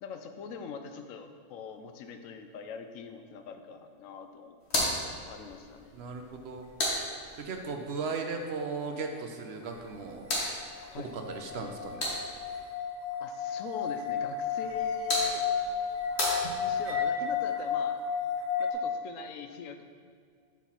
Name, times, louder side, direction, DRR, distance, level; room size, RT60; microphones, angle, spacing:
voice 1, 0.0-4.6 5.3-5.9 10.9-11.2 13.2-15.4 16.6-18.0 18.6-19.8, left 6 dB, 90° left, 7 dB, 1.0 m, -43 dB
sound 1, 4.6-7.7 9.7-12.6 14.6-17.1, left 1 dB, 55° left, 1.5 m, -35 dB
voice 2, 5.9-6.7 7.4-10.7 11.0-12.1 16.4-16.7, right 4 dB, 60° right, 4 dB, 0.8 m, -37 dB
sound 2, 10.3-18.7, left 6 dB, 80° right, 1.1 m, -32 dB
5.9 x 4.4 x 5.5 m, 2.1 s
omnidirectional pair, 1.3 m